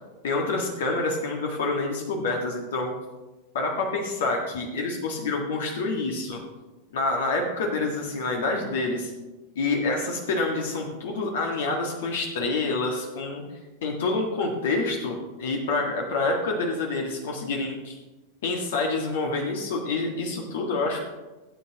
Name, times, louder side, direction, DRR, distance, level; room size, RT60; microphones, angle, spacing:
voice 1, 0.2-2.9 3.5-6.4 6.9-9.1 9.5-13.4 13.8-18.0 18.4-21.0, left 3 dB, 60° left, 1 dB, 1.6 m, -27 dB
17.0 x 8.5 x 2.9 m, 1.1 s
figure-of-eight pair, 90°, 0 cm